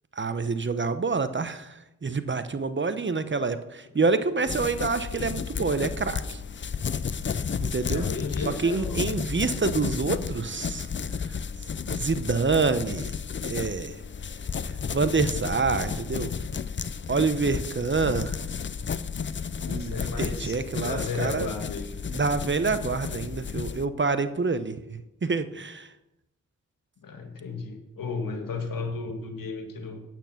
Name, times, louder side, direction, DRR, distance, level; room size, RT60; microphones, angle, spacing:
voice 1, 0.2-6.4 7.6-8.1 8.6-10.8 11.8-13.1 13.4-13.9 14.9-16.3 17.1-18.4 19.7-21.5 22.1-25.9, right 4 dB, 35° right, 11 dB, 0.9 m, -27 dB
sound 1, 4.5-23.9, left 6 dB, 35° left, 0.6 m, -32 dB
voice 2, 7.8-9.0 19.6-20.6 20.8-22.0 27.0-30.0, left 4 dB, 75° left, 4 dB, 2.0 m, -34 dB
8.9 x 8.9 x 5.9 m, 0.90 s
cardioid pair, 55°, 34 cm